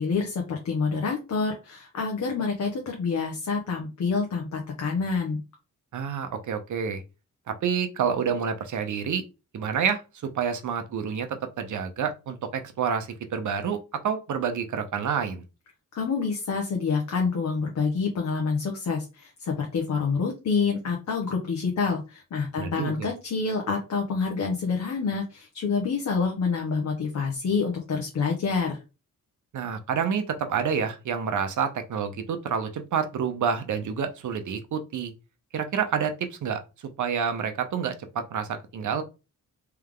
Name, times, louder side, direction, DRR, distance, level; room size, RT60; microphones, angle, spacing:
voice 1, 0.0-5.4 15.9-28.8, left 5 dB, 60° left, 1.1 m, -27 dB
voice 2, 5.9-7.0 7.5-9.2 9.5-15.4 22.6-23.1 29.5-35.1 35.5-36.6 37.0-39.0, right 7 dB, 65° right, 0.8 m, -28 dB
3.5 x 3.3 x 3.6 m
wide cardioid pair, 120°, 32 cm